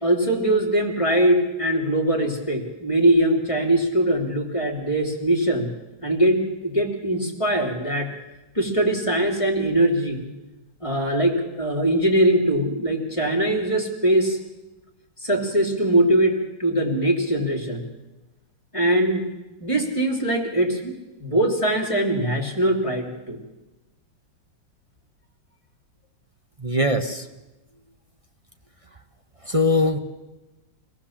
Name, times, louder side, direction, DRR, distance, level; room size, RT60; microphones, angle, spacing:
voice 1, 0.0-5.7 6.0-8.1 8.5-10.3 10.8-14.4 15.2-17.9 18.7-19.2 19.6-20.9 21.2-23.4, right 1 dB, 15° left, 1 dB, 2.9 m, -21 dB
voice 2, 26.6-27.3 29.4-30.0, left 2 dB, 25° right, 4 dB, 0.8 m, -21 dB
25.5 x 18.5 x 7.3 m, 1.1 s
omnidirectional pair, 2.2 m